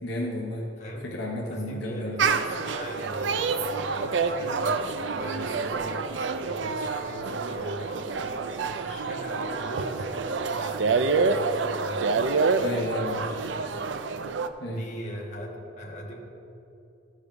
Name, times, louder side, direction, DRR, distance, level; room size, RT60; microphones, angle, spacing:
voice 1, 0.0-0.7 1.0-2.2 12.6-13.3 14.6-14.8, left 1 dB, 70° left, -3 dB, 1.2 m, -32 dB
voice 2, 1.5-12.1 12.4-12.6 13.1-13.7 14.7-15.5 15.7-16.2, equal, 40° left, -2 dB, 1.6 m, -40 dB
sound 1, 2.2-14.5, right 4 dB, 75° right, 0.5 m, -27 dB
14.0 x 4.8 x 5.3 m, 2.8 s
head